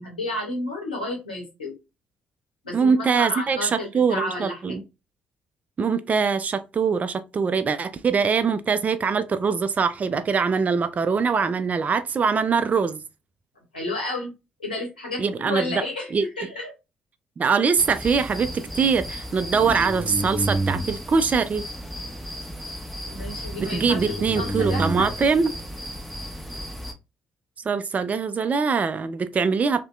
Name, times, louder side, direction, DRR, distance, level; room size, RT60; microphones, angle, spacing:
voice 1, 0.0-1.7 2.6-4.8 13.7-14.3 14.6-16.7 23.1-25.1, left 2 dB, 90° left, 0.8 m, -31 dB
voice 2, 2.7-4.8 5.8-13.0 15.2-15.8 16.1-16.2 17.4-18.5 18.8-21.6 23.6-25.5 27.7-29.8, right 5 dB, 30° right, 0.3 m, -23 dB
sound 1, 17.8-26.9, right 1 dB, ahead, 0.7 m, -31 dB
2.6 x 2.1 x 2.3 m
figure-of-eight pair, 45°, 5 cm